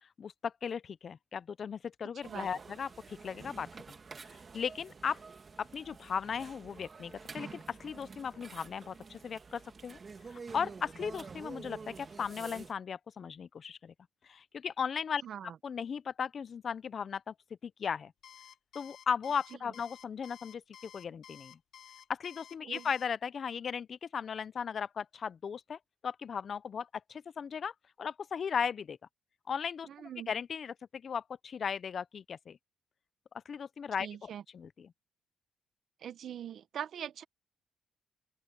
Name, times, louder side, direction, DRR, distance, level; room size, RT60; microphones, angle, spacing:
voice 1, 0.2-3.7 4.3-5.2 5.6-10.0 10.3-13.9 14.3-15.2 15.6-17.3 17.6-18.1 18.7-21.6 22.1-29.0 29.5-29.9 30.3-32.6 33.5-34.9, left 7 dB, 50° left, 0.6 m, -37 dB
sound 1, 2.2-12.7, right 4 dB, 35° right, 2.0 m, -49 dB
voice 2, 15.2-15.6 22.6-22.9 29.9-30.3 34.0-34.4 36.0-37.2, right 9 dB, 65° right, 1.1 m, -42 dB
Alarm, 18.2-23.1, left 9 dB, 65° left, 1.3 m, -53 dB
open air
cardioid pair, 90°, 0 cm